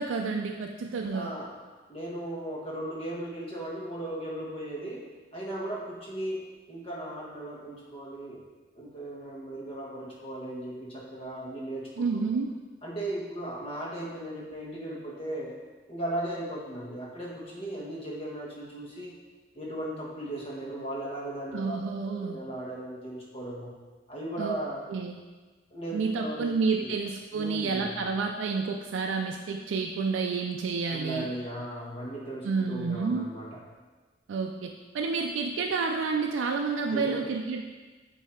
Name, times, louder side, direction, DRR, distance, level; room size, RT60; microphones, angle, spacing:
voice 1, 0.0-1.3 12.0-12.5 21.5-22.4 24.4-24.6 24.9-25.2 25.9-31.3 32.4-33.3 34.3-37.6, right 4 dB, 80° right, 3 dB, 0.4 m, -29 dB
voice 2, 1.1-1.5 1.9-5.0 5.3-6.4 6.7-8.4 8.7-12.2 12.8-15.5 15.9-19.1 19.5-23.7 24.1-24.8 25.7-26.9 27.3-28.0 30.9-33.6 36.8-37.2, right 1 dB, 30° left, -4 dB, 1.3 m, -37 dB
8.0 x 2.8 x 4.4 m, 1.3 s
head